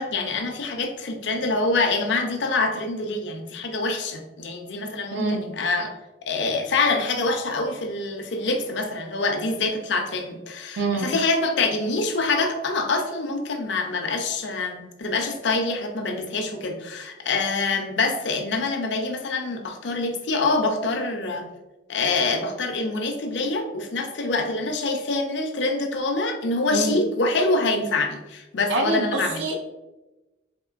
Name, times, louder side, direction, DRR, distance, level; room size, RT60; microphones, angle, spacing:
voice 1, 0.0-5.9 6.2-21.5 21.9-29.4, left 3 dB, 75° left, 3 dB, 0.5 m, -25 dB
voice 2, 5.1-5.5 10.8-11.1 26.7-27.0 28.7-29.6, right 2 dB, 80° right, 2 dB, 0.5 m, -25 dB
3.6 x 3.6 x 2.4 m, 1.0 s
head